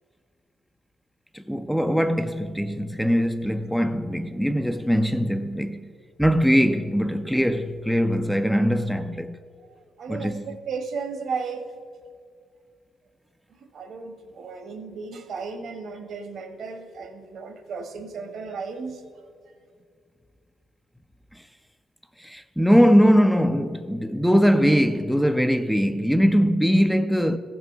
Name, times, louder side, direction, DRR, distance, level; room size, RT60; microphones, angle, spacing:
voice 1, 1.3-5.9 6.2-9.4 10.1-10.4 21.3-21.4 22.2-27.4, equal, ahead, 0.4 m, -21 dB
voice 2, 9.6-11.6 13.7-19.0, right 5 dB, 65° right, 1.1 m, -34 dB
14.5 x 6.2 x 5.4 m
cardioid pair, 90°, 0 cm